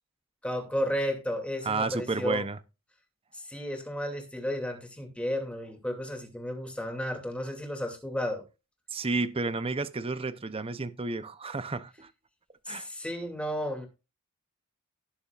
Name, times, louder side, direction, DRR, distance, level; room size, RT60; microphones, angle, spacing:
voice 1, 0.4-2.4 3.3-8.4 12.7-13.9, equal, 5° left, 2.5 m, -33 dB
voice 2, 1.7-2.6 8.9-12.1 12.7-12.9, right 3 dB, 25° right, 0.6 m, -31 dB
18.5 x 7.0 x 2.4 m
head